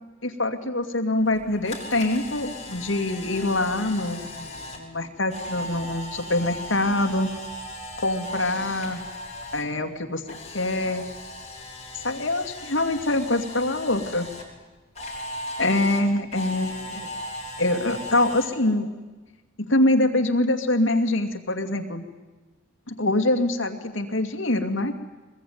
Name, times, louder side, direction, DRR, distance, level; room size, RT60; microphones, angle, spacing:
voice 1, 0.2-7.3 8.0-9.0 9.5-11.0 12.0-14.3 15.6-17.1 17.6-18.9 19.7-22.0 22.9-24.9, left 2 dB, 65° left, 5 dB, 2.4 m, -24 dB
Camera, 1.3-9.6 9.9-14.4 15.0-18.5, left 1 dB, 35° left, 6.4 m, -37 dB
23.0 x 21.5 x 9.5 m, 1.2 s
head